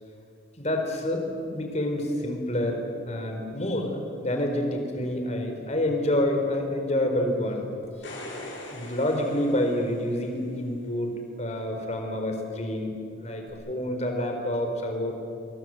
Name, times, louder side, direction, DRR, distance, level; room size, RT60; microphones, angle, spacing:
voice 1, 0.6-7.6 8.0-8.2 8.7-15.1, left 1 dB, 35° left, 4 dB, 4.3 m, -28 dB
sound 1, 7.8-10.4 13.5-13.6, left 1 dB, 60° left, 7.5 m, -41 dB
27.5 x 24.0 x 7.9 m, 2.6 s
head